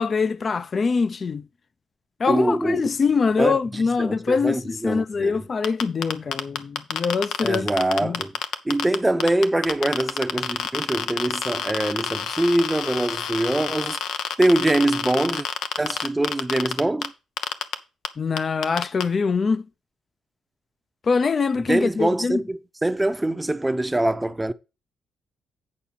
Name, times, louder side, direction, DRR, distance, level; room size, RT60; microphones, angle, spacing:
voice 1, 0.0-1.5 2.2-7.7 8.0-8.2 18.2-19.7 21.0-22.4, left 5 dB, 40° left, 0.6 m, -23 dB
voice 2, 2.3-2.8 3.4-3.6 4.0-5.4 7.4-8.3 8.6-14.0 14.4-15.5 15.8-17.1 21.7-24.5, right 1 dB, 10° right, 0.8 m, -23 dB
sound 1, 5.6-9.0 9.2-17.1 17.4-17.7 18.0-18.1 18.4-19.0, left 8 dB, 80° left, 0.8 m, -27 dB
8.7 x 4.8 x 5.9 m
cardioid pair, 90°, 0 cm